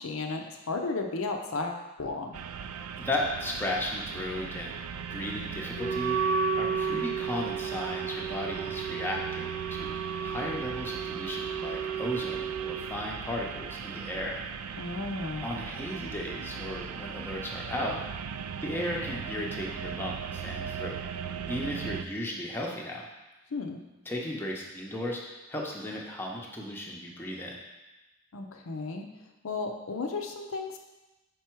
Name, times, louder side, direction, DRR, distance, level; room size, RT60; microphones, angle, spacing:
voice 1, 0.0-2.3 6.7-7.1 14.8-15.5 23.5-23.8 28.3-29.1 29.4-30.8, left 3 dB, 70° left, 3 dB, 0.6 m, -34 dB
sound 1, 2.3-22.0, right 7 dB, 80° right, 0.4 m, -38 dB
voice 2, 3.0-4.7 5.1-9.9 10.2-14.4 15.4-18.0 18.6-20.9 21.5-23.1 24.1-25.2 25.5-27.6, left 1 dB, 10° left, -2 dB, 0.6 m, -35 dB
Wind instrument woodwind instrument, 5.7-12.8, right 6 dB, 50° right, 0.9 m, -32 dB
5.2 x 4.6 x 4.5 m, 1.1 s
head